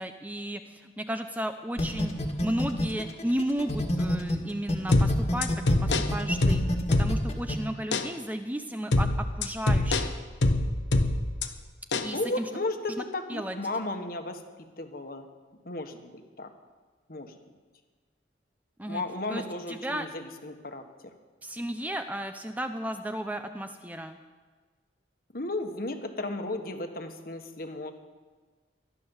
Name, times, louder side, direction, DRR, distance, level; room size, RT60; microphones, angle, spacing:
voice 1, 0.0-2.1 2.4-5.5 5.8-10.1 12.0-12.5 12.9-13.0 13.3-13.5 18.8-19.0 19.3-20.1 21.4-24.2, right 1 dB, 10° right, 7 dB, 0.6 m, -34 dB
sound 1, 1.8-4.4 4.7-7.5, left 1 dB, 35° left, 1.7 m, -28 dB
sound 2, 4.9-7.4 7.9-8.1 8.9-11.5 11.9-12.1, left 2 dB, 80° left, 1.1 m, -24 dB
voice 2, 12.1-15.3 15.6-16.5 17.1-17.3 18.9-21.1 25.3-27.9, left 2 dB, 55° left, 6 dB, 1.5 m, -34 dB
15.0 x 11.5 x 7.2 m, 1.4 s
head